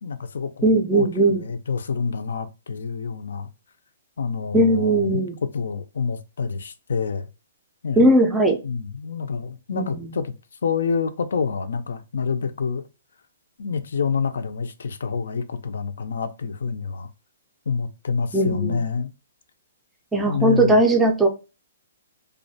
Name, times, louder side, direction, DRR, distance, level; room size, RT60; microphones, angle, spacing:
voice 1, 0.0-3.5 4.2-7.3 7.8-8.1 8.6-10.3 10.6-12.8 13.6-17.1 17.7-19.1 20.2-20.8, left 5 dB, 80° left, 0.4 m, -27 dB
voice 2, 0.6-1.4 4.5-5.4 8.0-8.6 9.7-10.1 18.3-18.8 20.1-21.3, right 1 dB, 5° right, 0.4 m, -18 dB
2.4 x 2.1 x 2.6 m
hypercardioid pair, 160°, 0 cm